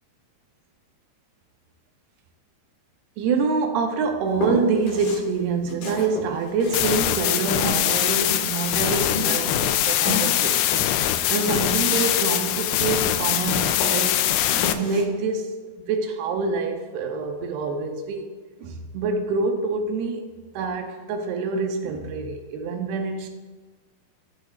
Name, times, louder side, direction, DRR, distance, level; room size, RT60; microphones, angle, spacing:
voice 1, 3.2-10.6 11.3-14.2 14.7-15.5 15.8-18.3 18.6-20.3 20.5-23.3, right 4 dB, 85° right, 4 dB, 2.3 m, -26 dB
Walk footsteps, 4.4-5.3 5.6-8.7 9.2-13.4 13.8-15.0, left 2 dB, 55° left, 2.7 m, -32 dB
sound 1, 6.7-14.7, left 12 dB, 85° left, 3.0 m, -23 dB
16.0 x 6.6 x 2.4 m, 1.4 s
omnidirectional pair, 5.6 m